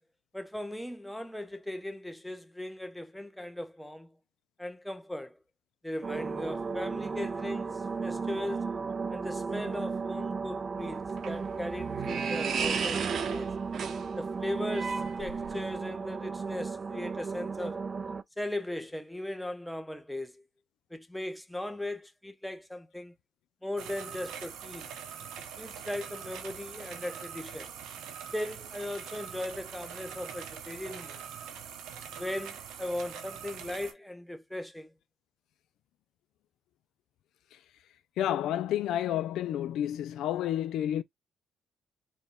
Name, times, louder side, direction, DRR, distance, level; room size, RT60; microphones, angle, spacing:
voice 1, 0.3-4.1 4.6-5.4 5.8-8.7 9.1-13.6 14.2-17.8 18.4-20.4 20.9-23.1 23.6-24.9 25.6-27.7 28.3-31.2 32.2-34.9, left 1 dB, 5° left, 0.8 m, -38 dB
sound 1, 6.0-18.2, right 5 dB, 35° right, 0.4 m, -35 dB
sound 2, 10.8-15.8, right 6 dB, 60° right, 0.8 m, -35 dB
sound 3, 23.8-33.9, right 8 dB, 85° right, 0.9 m, -43 dB
voice 2, 38.2-41.0, left 11 dB, 85° left, 0.4 m, -30 dB
4.4 x 2.3 x 3.5 m
cardioid pair, 90°, 0 cm